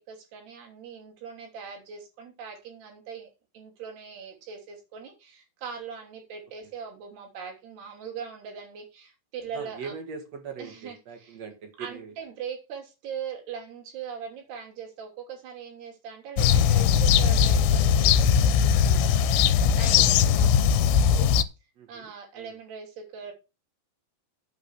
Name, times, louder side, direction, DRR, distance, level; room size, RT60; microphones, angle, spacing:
voice 1, 0.0-9.9 10.6-11.4 11.8-19.3 19.8-21.3 21.9-23.3, right 6 dB, 65° right, 5.1 m, -41 dB
voice 2, 9.5-12.1 20.0-20.4 21.8-22.1 22.4-22.5, right 5 dB, 50° right, 2.4 m, -41 dB
sound 1, 16.4-21.4, left 8 dB, 90° left, 3.0 m, -20 dB
8.7 x 6.3 x 6.5 m
omnidirectional pair, 5.0 m